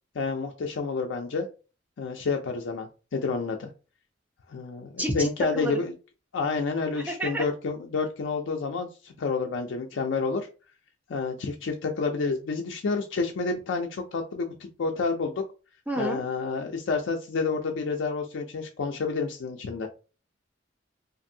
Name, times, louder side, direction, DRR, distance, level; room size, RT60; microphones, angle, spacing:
voice 1, 0.2-1.5 2.0-3.7 4.5-5.9 6.3-10.5 11.1-15.4 16.0-19.9, left 4 dB, 75° left, 3 dB, 0.4 m, -29 dB
voice 2, 6.9-7.4 15.9-16.2, right 2 dB, 10° right, 0 dB, 0.7 m, -29 dB
2.6 x 2.5 x 2.6 m, 0.33 s
head